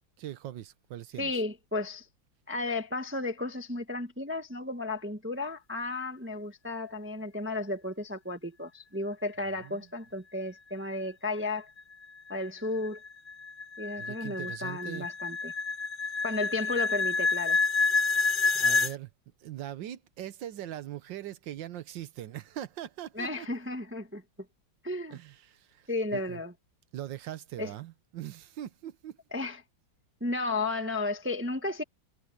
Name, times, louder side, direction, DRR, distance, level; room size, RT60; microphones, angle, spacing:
voice 1, 0.2-1.3 9.6-9.9 14.0-15.1 18.3-19.1 19.4-23.5 25.1-26.4 26.9-29.2, right 12 dB, 70° right, 1.5 m, -41 dB
voice 2, 1.2-2.1 2.5-11.7 12.3-13.0 13.8-15.5 16.2-17.6 23.2-24.2 24.8-25.2 25.9-26.5 27.6-27.7 29.3-29.6 30.2-31.8, left 2 dB, 5° right, 1.1 m, -33 dB
sound 1, 11.8-18.9, left 4 dB, 70° left, 0.4 m, -28 dB
omnidirectional pair, 2.2 m